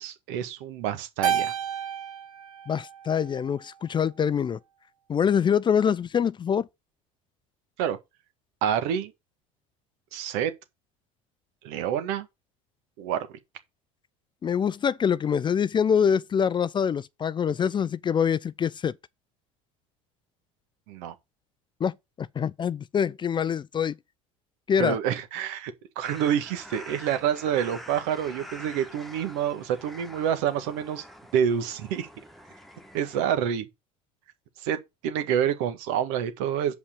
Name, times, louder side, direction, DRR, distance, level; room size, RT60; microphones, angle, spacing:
voice 1, 0.0-1.5 7.8-8.0 8.6-9.1 10.1-10.5 11.6-12.3 13.0-13.3 20.9-21.1 24.8-31.0 31.3-32.1 32.9-33.7 34.6-34.8 35.0-36.7, right 9 dB, 70° right, 1.7 m, -27 dB
Keyboard (musical), 1.2-3.7, right 8 dB, 90° right, 1.5 m, -31 dB
voice 2, 2.7-4.6 5.1-6.7 14.4-18.9 21.8-23.9 24.7-25.0, left 7 dB, 30° left, 0.5 m, -25 dB
sound 1, 26.0-33.2, equal, ahead, 1.6 m, -46 dB
7.2 x 5.4 x 6.7 m
hypercardioid pair, 75°, 17 cm